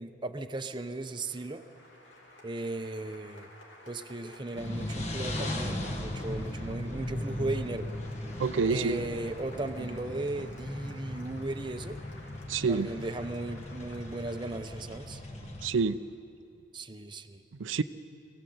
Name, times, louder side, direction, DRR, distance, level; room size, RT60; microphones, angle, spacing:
voice 1, 0.0-1.6 2.4-3.5 3.9-7.9 8.7-12.0 12.7-15.2 16.7-17.4, right 2 dB, 25° right, 7 dB, 0.7 m, -36 dB
Applause, 0.6-15.0, left 1 dB, 75° left, 3.0 m, -53 dB
sound 1, 4.5-15.7, left 1 dB, 35° left, 1.5 m, -38 dB
voice 2, 8.4-9.0 12.5-12.9 15.6-16.0 17.6-17.8, right 4 dB, 80° right, 11 dB, 0.5 m, -27 dB
22.0 x 16.0 x 7.8 m, 2.7 s
head